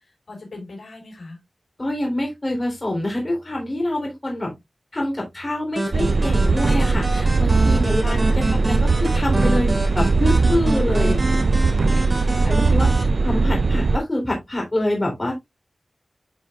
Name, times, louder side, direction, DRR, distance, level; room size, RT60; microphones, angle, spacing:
voice 1, 0.3-1.4 7.5-8.5 10.9-12.0, left 2 dB, 70° left, 5.0 m, -38 dB
voice 2, 1.8-4.5 4.9-11.2 11.9-12.0 12.4-12.9 13.2-15.3, left 1 dB, 30° left, 3.4 m, -26 dB
sound 1, 5.8-13.0, right 1 dB, 40° right, 4.2 m, -28 dB
sound 2, 5.9-14.0, right 3 dB, 65° right, 0.4 m, -19 dB
10.0 x 5.6 x 2.4 m
wide cardioid pair, 65°, 0 cm